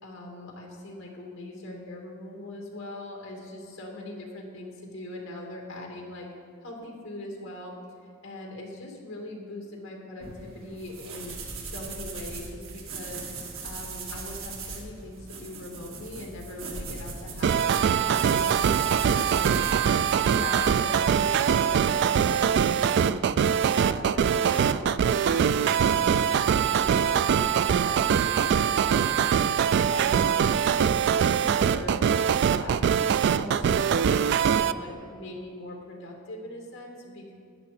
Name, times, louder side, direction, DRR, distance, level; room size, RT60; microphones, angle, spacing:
voice 1, 0.0-6.3 6.6-7.8 8.2-11.3 11.6-20.0 20.3-23.2 23.6-37.4, left 2 dB, 70° left, 0 dB, 2.3 m, -41 dB
sound 1, 10.2-20.8, right 4 dB, 80° right, 2.1 m, -38 dB
sound 2, 17.4-34.7, right 7 dB, 55° right, 0.3 m, -23 dB
13.0 x 9.6 x 4.3 m, 2.3 s
head